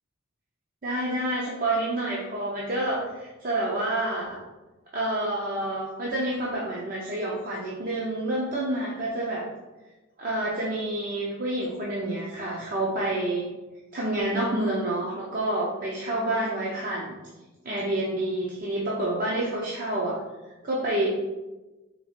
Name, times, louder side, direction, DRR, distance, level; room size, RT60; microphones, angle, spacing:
voice 1, 0.8-4.4 4.9-9.5 10.2-13.4 13.9-17.2 17.6-20.2 20.6-21.1, right 1 dB, 45° right, -5 dB, 0.6 m, -28 dB
4.0 x 2.4 x 4.3 m, 1.1 s
head